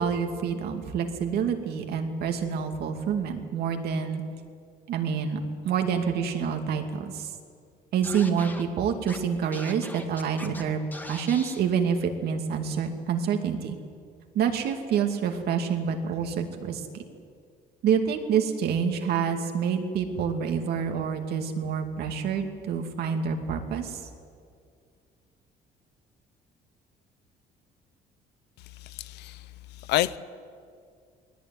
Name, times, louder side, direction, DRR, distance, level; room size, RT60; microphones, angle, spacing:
voice 1, 0.0-4.2 4.9-7.3 7.9-10.8 11.1-13.8 14.3-16.9 17.8-24.0, right 7 dB, 70° right, 2.5 m, -27 dB
Scratching (performance technique), 8.0-8.6 9.1-9.2 9.5-10.6 10.9-11.6, left 1 dB, 10° left, 2.0 m, -40 dB
voice 2, 28.6-30.2, left 15 dB, 85° left, 0.8 m, -30 dB
20.5 x 18.0 x 9.4 m
cardioid pair, 110°, 17 cm